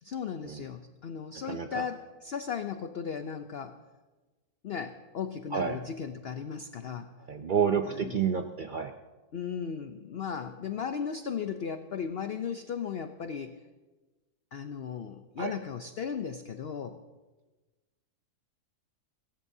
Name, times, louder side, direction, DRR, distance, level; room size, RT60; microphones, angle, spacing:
voice 1, 0.0-3.8 4.6-7.1 7.8-8.5 9.3-13.6 14.5-17.0, left 7 dB, 60° left, 8 dB, 0.6 m, -36 dB
voice 2, 1.5-1.8 5.5-5.8 7.3-8.9 15.4-15.5, right 7 dB, 80° right, 6 dB, 0.4 m, -29 dB
24.0 x 14.5 x 2.7 m, 1.2 s
omnidirectional pair, 1.7 m